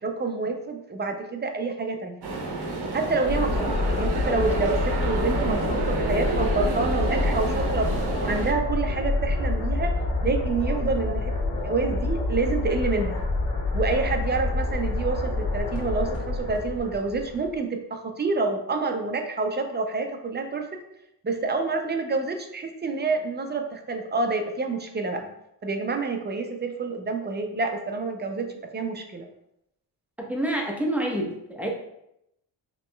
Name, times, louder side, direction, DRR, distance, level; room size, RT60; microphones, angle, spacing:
voice 1, 0.0-2.2 2.9-10.0 10.2-11.3 11.6-13.2 13.7-20.8 21.2-25.2 25.6-29.3, right 3 dB, 25° right, 5 dB, 0.5 m, -28 dB
sound 1, 2.2-8.5, right 3 dB, 65° right, 0.9 m, -29 dB
sound 2, 3.3-17.5, left 2 dB, 85° left, 1.4 m, -27 dB
voice 2, 30.3-31.7, right 1 dB, 5° right, -1 dB, 0.8 m, -27 dB
5.1 x 3.0 x 2.2 m, 0.81 s
cardioid pair, 85°, 43 cm